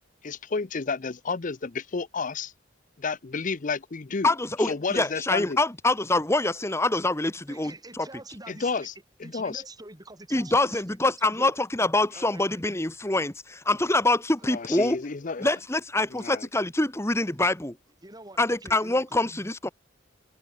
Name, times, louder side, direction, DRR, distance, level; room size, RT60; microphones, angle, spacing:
voice 1, 0.2-2.5 3.0-4.3 4.6-5.6 8.5-8.9 9.2-9.6 14.4-15.5 16.1-16.5, left 4 dB, 40° left, 0.6 m, -31 dB
voice 2, 4.2-8.1 10.3-15.0 15.4-17.8 18.4-19.7, left 2 dB, 15° left, 1.2 m, -25 dB
voice 3, 7.5-8.9 9.2-11.5 12.1-12.6 14.7-14.8 18.0-19.4, right 2 dB, 20° right, 7.1 m, -46 dB
head